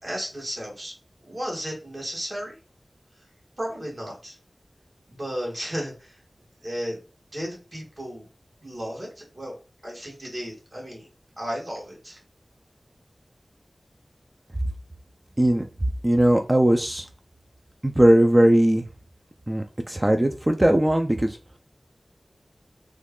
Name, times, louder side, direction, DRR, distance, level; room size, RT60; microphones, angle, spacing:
voice 1, 0.0-0.9 1.2-2.6 3.6-4.4 5.1-6.2 6.6-7.0 7.3-8.2 8.6-9.5 9.8-11.1 11.4-12.2, equal, 50° right, -3 dB, 1.6 m, -34 dB
voice 2, 16.0-17.1 17.8-18.8 19.5-21.4, right 1 dB, 20° right, 5 dB, 0.4 m, -19 dB
3.1 x 2.3 x 3.6 m, 0.32 s
wide cardioid pair, 60°, 0 cm